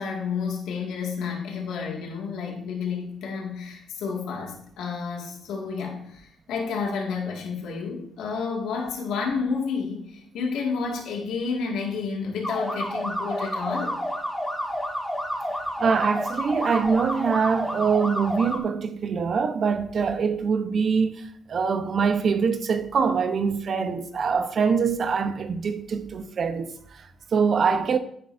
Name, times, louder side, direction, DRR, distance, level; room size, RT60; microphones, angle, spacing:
voice 1, 0.0-14.0, left 5 dB, 85° left, 2.1 m, -30 dB
sound 1, 12.4-18.6, equal, 5° left, 2.1 m, -30 dB
voice 2, 15.8-28.0, right 5 dB, 50° right, 0.9 m, -24 dB
10.0 x 9.7 x 2.7 m
cardioid pair, 90°, 0 cm